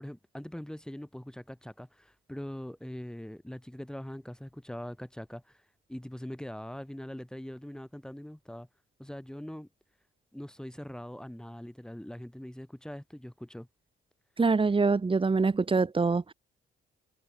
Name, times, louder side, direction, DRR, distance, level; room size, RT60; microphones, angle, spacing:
voice 1, 0.0-8.7 9.0-9.7 10.3-13.7, equal, 5° left, 5.7 m, -42 dB
voice 2, 14.4-16.3, right 4 dB, 25° right, 2.5 m, -25 dB
cardioid pair, 90°, 20 cm